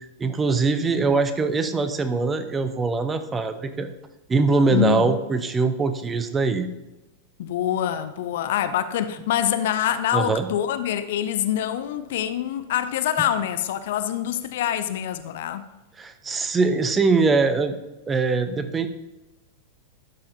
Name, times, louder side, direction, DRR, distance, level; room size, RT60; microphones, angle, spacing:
voice 1, 0.2-3.9 4.3-6.7 10.1-10.5 16.0-17.8 18.1-18.9, right 4 dB, 15° right, 0.6 m, -22 dB
voice 2, 4.7-5.1 7.4-15.6, left 10 dB, 55° left, 0.5 m, -25 dB
11.5 x 5.6 x 2.7 m
figure-of-eight pair, 90°, 0 cm